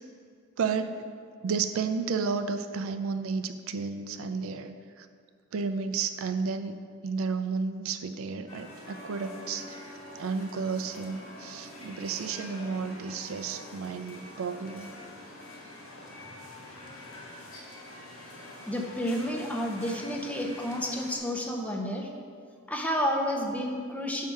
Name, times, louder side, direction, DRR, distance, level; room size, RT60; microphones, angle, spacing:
voice 1, 0.6-1.0 1.4-5.1 5.5-6.7 7.0-14.9, right 5 dB, 70° right, 9 dB, 0.4 m, -32 dB
sound 1, 8.5-21.2, left 1 dB, 75° left, 1.5 m, -45 dB
voice 2, 18.7-22.1 22.7-24.3, equal, 5° left, 1 dB, 0.6 m, -30 dB
5.5 x 4.8 x 6.2 m, 2.1 s
head